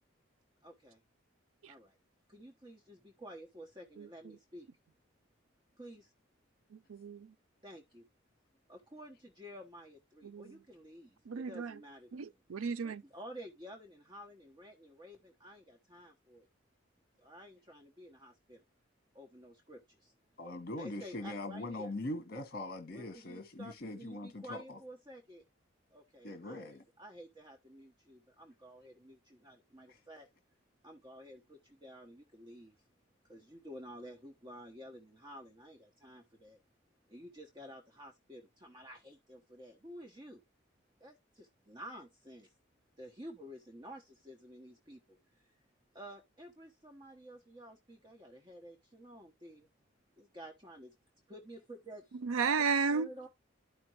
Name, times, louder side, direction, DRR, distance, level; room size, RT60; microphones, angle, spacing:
voice 1, 0.6-1.0 1.7-2.0 2.3-4.7 5.8-6.1 7.6-8.1 8.7-12.4 12.8-16.5 17.2-18.6 19.1-20.1 20.8-21.9 22.9-25.4 25.9-30.3 30.8-32.7 33.2-36.6 37.1-40.4 41.0-42.5 43.0-45.5 45.9-49.7 50.2-50.9 51.3-52.0 52.9-53.3, equal, 20° right, 1.1 m, -51 dB
voice 2, 6.9-7.3 10.2-10.5 11.3-11.7 12.1-13.0 52.2-53.1, right 5 dB, 90° right, 0.5 m, -33 dB
voice 3, 20.4-24.4 26.2-26.8, left 1 dB, 45° left, 1.2 m, -41 dB
12.0 x 5.2 x 3.0 m
head